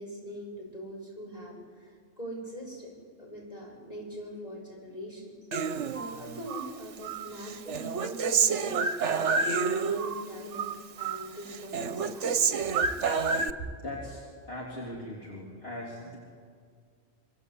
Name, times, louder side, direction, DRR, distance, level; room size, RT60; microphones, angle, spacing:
voice 1, 0.0-2.9 3.2-5.3 5.9-13.0 13.6-13.7, equal, 30° left, -2 dB, 6.5 m, -42 dB
Human voice, 5.5-6.7 7.0-10.2 10.5-11.3 11.5-13.5, right 5 dB, 65° right, 1.2 m, -28 dB
voice 2, 13.8-16.2, left 1 dB, 50° left, -4 dB, 3.5 m, -40 dB
26.5 x 25.0 x 8.4 m, 2.1 s
omnidirectional pair, 1.3 m